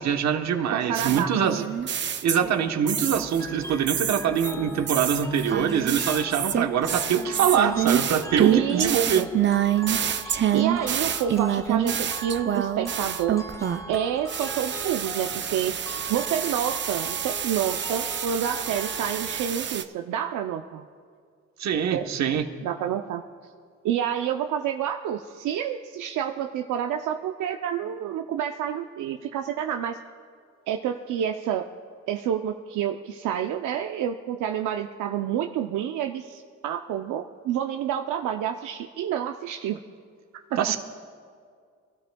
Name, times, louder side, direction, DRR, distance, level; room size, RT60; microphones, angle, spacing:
voice 1, 0.0-1.6 2.2-9.2 21.6-22.5 40.6-40.8, right 8 dB, 65° right, 6 dB, 1.1 m, -24 dB
voice 2, 0.7-1.7 8.5-9.3 10.2-13.4 13.9-15.7 16.1-20.8 21.9-22.1 22.6-23.2 23.8-30.0 30.7-31.6 32.1-39.8 40.5-40.6, right 9 dB, 80° right, 5 dB, 0.6 m, -28 dB
sound 1, 0.9-3.4 3.9-14.0 14.3-19.8, right 9 dB, 40° right, 0.5 m, -27 dB
sound 2, 3.1-19.5, equal, 10° left, 0.9 m, -41 dB
24.0 x 12.5 x 2.3 m, 2.1 s
cardioid pair, 90°, 30 cm